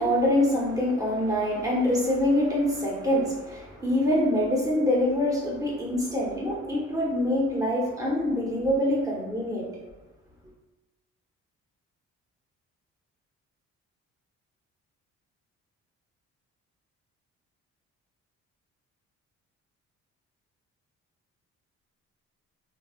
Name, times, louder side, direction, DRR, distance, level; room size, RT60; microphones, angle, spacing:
voice 1, 0.0-9.7, left 1 dB, 10° right, -4 dB, 0.9 m, -25 dB
3.2 x 2.6 x 2.4 m, 1.1 s
cardioid pair, 90°, 30 cm